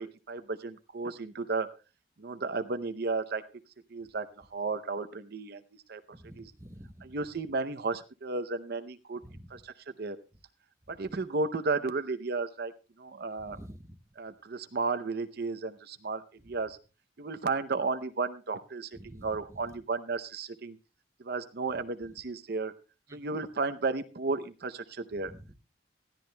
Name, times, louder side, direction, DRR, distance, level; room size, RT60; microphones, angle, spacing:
voice 1, 0.0-1.7 2.2-3.4 3.9-5.6 5.9-6.0 6.4-6.5 7.0-9.2 9.5-10.2 10.9-12.7 13.0-13.6 14.2-16.8 17.2-20.8 21.2-22.7 23.1-25.3, right 3 dB, 55° right, 11 dB, 0.6 m, -33 dB
voice 2, 6.1-7.1 9.2-9.5 13.4-14.0 18.9-19.3 23.1-23.3 25.2-25.5, equal, 15° right, 9 dB, 0.7 m, -48 dB
19.5 x 14.0 x 2.2 m, 0.33 s
head